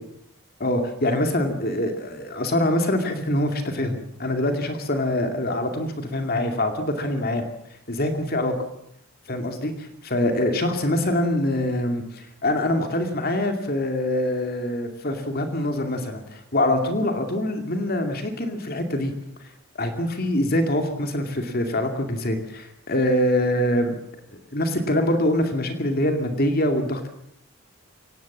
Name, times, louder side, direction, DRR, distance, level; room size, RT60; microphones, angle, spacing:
voice 1, 0.6-7.4 7.9-8.6 9.3-19.1 19.7-24.0 24.5-27.1, left 1 dB, 45° left, 6 dB, 2.5 m, -24 dB
24.5 x 19.0 x 7.4 m, 0.72 s
head